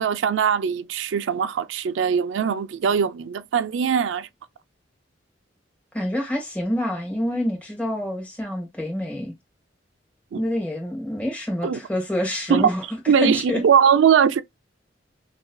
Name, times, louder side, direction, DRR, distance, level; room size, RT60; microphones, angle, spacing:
voice 1, 0.0-4.3 10.3-10.4 11.6-11.8 12.5-12.7 13.1-14.4, right 7 dB, 90° right, 0.4 m, -20 dB
voice 2, 5.9-9.3 10.3-13.6, left 1 dB, 10° left, 1.6 m, -27 dB
5.7 x 2.8 x 2.3 m
head